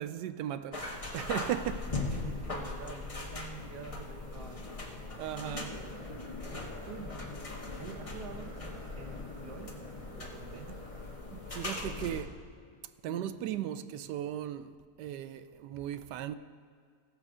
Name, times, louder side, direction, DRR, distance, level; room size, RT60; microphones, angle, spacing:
voice 1, 0.0-2.0 5.2-5.8 11.6-12.4 13.0-14.7 15.0-16.3, right 11 dB, 90° right, 1.2 m, -37 dB
sound 1, 0.7-12.2, left 3 dB, 25° left, 0.9 m, -40 dB
voice 2, 2.1-4.7 5.7-6.0 6.8-7.2 7.8-8.6 8.9-9.8 10.1-10.8 11.3-11.4, right 5 dB, 75° right, 1.6 m, -47 dB
sound 2, 5.6-12.0, equal, 35° right, 1.8 m, -52 dB
sound 3, 6.3-14.5, left 5 dB, 65° left, 1.3 m, -54 dB
16.0 x 6.5 x 4.9 m
omnidirectional pair, 1.8 m